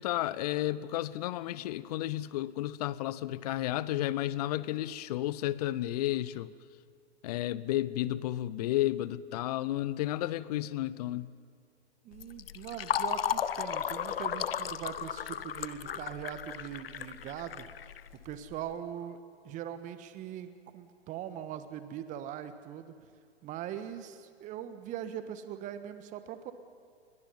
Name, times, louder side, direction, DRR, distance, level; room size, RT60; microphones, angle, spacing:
voice 1, 0.0-6.5 7.2-11.3, left 14 dB, 40° left, 19 dB, 0.8 m, -32 dB
voice 2, 12.0-17.7 18.2-19.2 19.4-22.9 23.4-26.5, right 10 dB, 25° right, 11 dB, 1.3 m, -41 dB
Fill (with liquid), 12.1-18.5, left 9 dB, 60° left, 1.0 m, -35 dB
28.5 x 23.5 x 5.6 m, 2.3 s
figure-of-eight pair, 110°, 32 cm